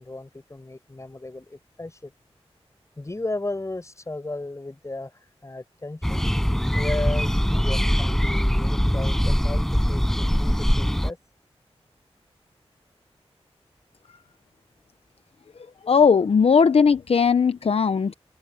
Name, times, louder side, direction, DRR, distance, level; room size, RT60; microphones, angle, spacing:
voice 1, 0.0-2.1 3.0-6.3 6.7-11.2, left 2 dB, 30° left, 5.8 m, -35 dB
sound 1, 6.0-11.1, equal, 5° left, 5.6 m, -22 dB
voice 2, 15.9-18.1, left 6 dB, 65° left, 0.7 m, -18 dB
open air
wide cardioid pair, 95°, 11 cm